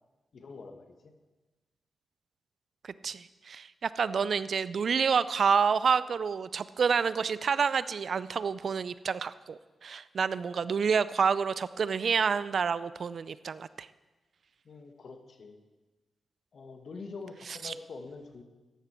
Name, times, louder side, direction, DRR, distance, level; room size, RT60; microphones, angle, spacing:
voice 1, 0.3-1.1 14.6-15.6 16.5-18.4, left 4 dB, 60° left, 6 dB, 1.4 m, -45 dB
voice 2, 2.8-13.9 17.5-17.7, right 6 dB, 60° right, 16 dB, 0.4 m, -28 dB
14.0 x 11.0 x 4.4 m, 1.2 s
cardioid pair, 85°, 0 cm